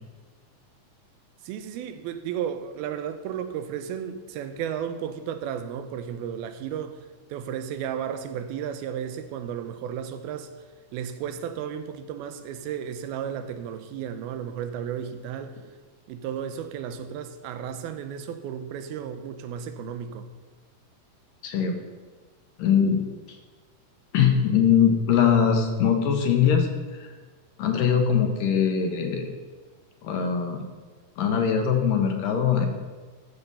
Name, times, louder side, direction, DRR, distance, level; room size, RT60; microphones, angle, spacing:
voice 1, 1.4-10.5 10.9-15.6 16.1-20.3, right 8 dB, 85° right, 9 dB, 2.7 m, -33 dB
voice 2, 21.4-21.8 22.6-23.0 24.1-27.1 27.6-29.3 30.0-30.6 31.2-32.7, left 7 dB, 70° left, 4 dB, 2.5 m, -22 dB
14.0 x 6.8 x 5.4 m, 1.4 s
omnidirectional pair, 4.3 m